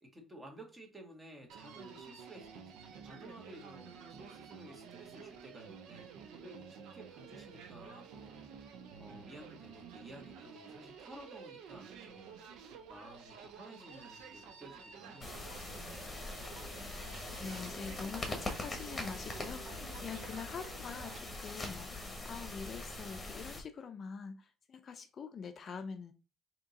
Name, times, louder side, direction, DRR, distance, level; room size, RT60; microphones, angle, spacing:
voice 1, 0.0-2.7 3.0-6.1 6.4-8.4 9.0-12.4 12.9-16.1, right 1 dB, 20° right, 1.3 m, -54 dB
Human voice, 1.5-21.3, right 6 dB, 80° right, 0.6 m, -51 dB
sound 1, 15.2-23.6, left 2 dB, 20° left, 1.1 m, -42 dB
voice 2, 16.1-26.1, left 5 dB, 45° left, 0.5 m, -45 dB
3.5 x 2.9 x 4.0 m
cardioid pair, 105°, 0 cm